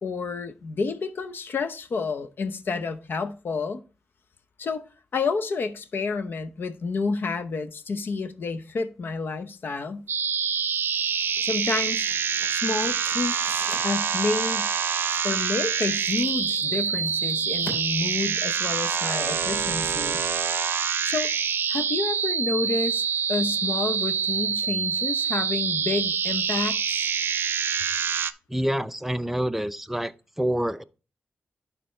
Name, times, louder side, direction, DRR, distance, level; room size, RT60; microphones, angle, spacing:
voice 1, 0.0-3.8 4.6-10.1 11.4-12.1 12.5-14.7 15.2-20.2 21.0-21.3 21.7-27.1, left 4 dB, 70° left, 0.8 m, -29 dB
sound 1, 9.9-18.9, left 2 dB, 85° left, 2.8 m, -47 dB
sound 2, 10.1-28.3, right 6 dB, 75° right, 0.5 m, -26 dB
voice 2, 28.5-30.1 30.4-30.8, equal, 5° right, 0.5 m, -27 dB
11.5 x 4.4 x 3.2 m
cardioid pair, 75°, 4 cm